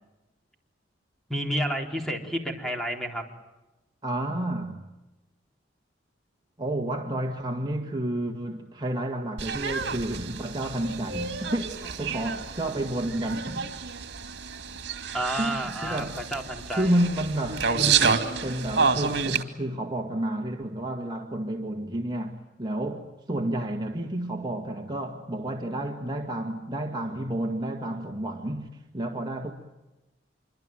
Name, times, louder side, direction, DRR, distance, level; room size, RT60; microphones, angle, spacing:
voice 1, 1.3-3.2 15.1-16.9, right 1 dB, ahead, 3.9 m, -30 dB
voice 2, 4.0-4.9 6.6-13.7 15.4-16.2 16.7-29.5, right 1 dB, 25° right, 1.9 m, -30 dB
sound 1, 9.4-19.4, right 5 dB, 65° right, 2.7 m, -29 dB
27.5 x 24.5 x 9.0 m
head